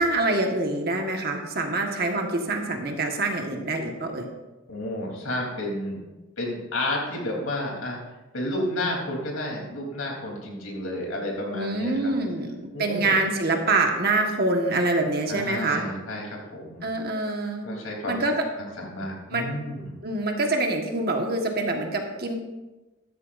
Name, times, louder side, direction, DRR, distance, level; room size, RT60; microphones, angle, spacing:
voice 1, 0.0-4.2 11.5-15.8 16.8-17.7 18.1-18.4 19.3-19.6 20.0-22.3, right 2 dB, 45° right, 2 dB, 1.5 m, -25 dB
voice 2, 4.7-6.0 6.4-8.0 8.3-12.1 12.7-13.2 15.3-16.8 17.6-18.3 18.6-20.0, left 1 dB, 85° left, -1 dB, 3.5 m, -31 dB
14.5 x 13.0 x 2.6 m, 1.1 s
head